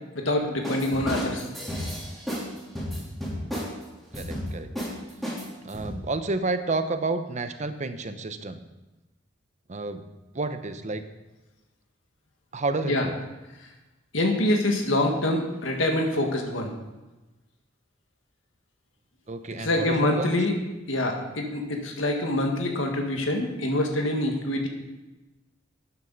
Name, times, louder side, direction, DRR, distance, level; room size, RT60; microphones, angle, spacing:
voice 1, 0.1-1.5 12.8-13.0 14.1-16.7 19.6-20.5 20.9-24.7, left 1 dB, 85° left, 2 dB, 1.7 m, -25 dB
sound 1, 0.6-2.5 2.7-3.7 4.1-4.5 4.7-4.9 5.2-5.9, equal, ahead, 3.3 m, -32 dB
voice 2, 4.1-4.7 5.6-8.6 9.7-10.1 10.3-11.0 12.5-13.2 19.3-20.3, right 3 dB, 40° right, 9 dB, 0.7 m, -30 dB
12.5 x 9.7 x 4.0 m, 1.1 s
head